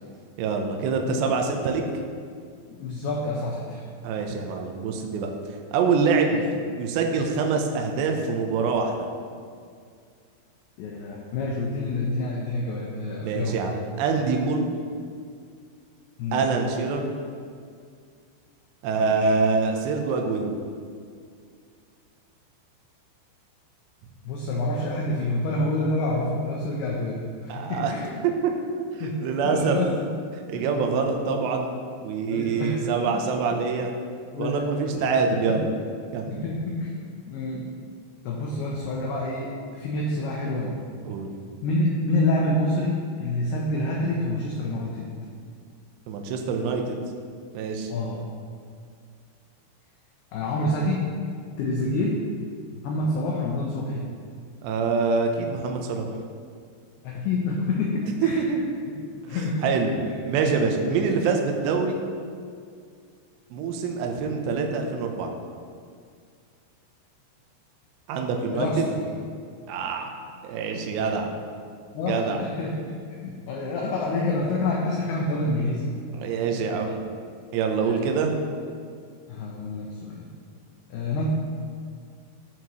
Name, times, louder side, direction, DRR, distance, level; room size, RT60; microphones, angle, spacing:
voice 1, 0.4-1.8 4.0-5.3 5.7-6.5 6.8-9.1 13.2-14.7 16.3-17.1 18.8-20.5 27.5-27.9 29.0-29.8 30.5-31.7 32.0-33.9 34.4-35.7 36.1-36.4 41.0-41.3 46.1-47.0 47.5-47.9 54.6-56.1 58.2-58.6 59.3-59.9 60.2-62.0 63.5-65.3 68.1-68.7 69.7-70.1 70.4-71.3 72.0-72.4 76.1-77.0 77.5-78.3, right 4 dB, 75° right, 3 dB, 2.8 m, -25 dB
voice 2, 2.7-3.8 6.3-6.4 10.8-13.6 16.2-16.5 19.0-19.3 24.2-28.1 29.0-30.1 30.5-30.6 32.3-33.2 34.3-35.6 36.3-37.0 37.3-37.7 38.2-40.8 41.6-45.1 47.9-48.2 50.3-51.1 51.6-52.2 52.7-54.1 57.0-58.5 58.9-59.0 59.2-59.7 60.0-60.2 60.9-61.1 68.5-69.0 71.9-76.0 77.8-78.1 79.3-80.3 80.9-81.3, left 2 dB, 80° left, -2 dB, 2.3 m, -28 dB
15.5 x 5.8 x 3.1 m, 2.2 s
omnidirectional pair, 5.6 m